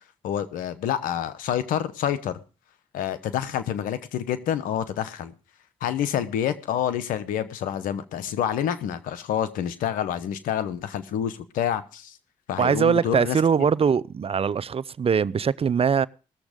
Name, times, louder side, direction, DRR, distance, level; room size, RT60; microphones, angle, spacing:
voice 1, 0.2-2.4 2.9-5.3 5.8-12.2 12.5-13.4, left 10 dB, 90° left, 0.9 m, -28 dB
voice 2, 12.6-16.1, right 6 dB, 45° right, 0.5 m, -22 dB
18.5 x 7.2 x 5.0 m
supercardioid pair, 50°, 14 cm